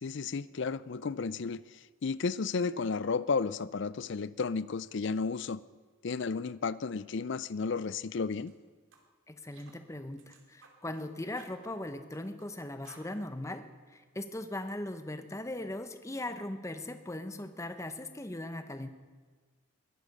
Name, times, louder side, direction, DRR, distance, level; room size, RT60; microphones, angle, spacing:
voice 1, 0.0-1.6 2.0-5.6 6.0-8.5, left 4 dB, 60° left, 0.5 m, -33 dB
sound 1, 8.3-8.5 8.9-9.1 9.5-9.8 10.2-11.1 11.4-12.5 12.8-13.1, right 4 dB, 65° right, 2.4 m, -57 dB
voice 2, 9.3-18.9, left 1 dB, 15° left, 0.9 m, -39 dB
21.5 x 11.5 x 5.4 m
head